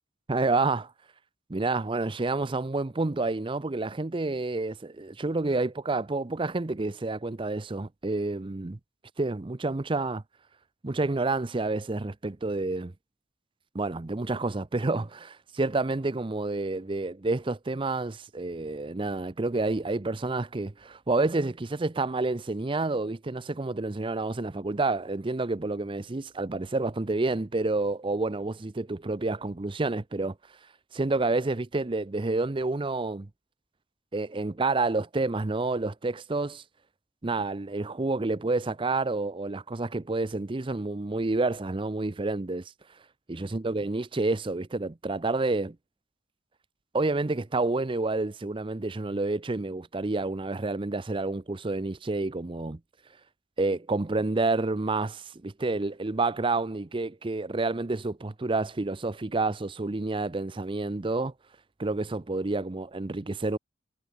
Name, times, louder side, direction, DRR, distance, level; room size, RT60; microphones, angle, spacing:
voice 1, 0.3-0.9 1.5-8.8 9.2-10.2 10.8-12.9 13.7-30.3 30.9-33.3 34.1-36.6 37.2-42.6 43.3-45.8 46.9-52.8 53.6-61.3 61.8-63.6, right 3 dB, 25° right, 0.6 m, -29 dB
head